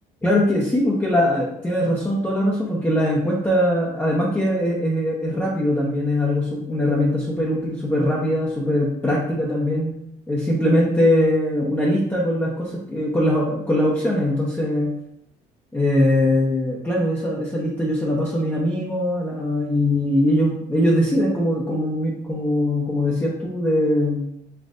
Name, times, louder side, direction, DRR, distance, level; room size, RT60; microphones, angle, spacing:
voice 1, 0.2-9.9 10.3-14.9 15.7-24.2, left 1 dB, 10° left, -5 dB, 0.8 m, -21 dB
5.3 x 2.5 x 2.6 m, 0.74 s
cardioid pair, 110°, 17 cm